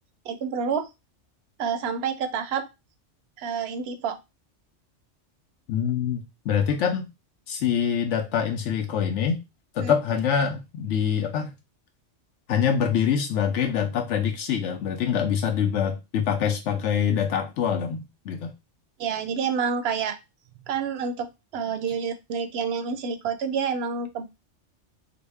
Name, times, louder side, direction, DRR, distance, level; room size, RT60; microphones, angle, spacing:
voice 1, 0.2-0.9 1.6-2.7 3.4-4.2 9.8-9.9 19.0-20.2 20.7-24.2, right 6 dB, 65° right, 10 dB, 0.7 m, -28 dB
voice 2, 5.7-7.0 7.5-9.4 9.7-11.5 12.5-18.5, left 8 dB, 75° left, 4 dB, 0.9 m, -25 dB
3.9 x 2.0 x 3.4 m, 0.24 s
omnidirectional pair, 1.3 m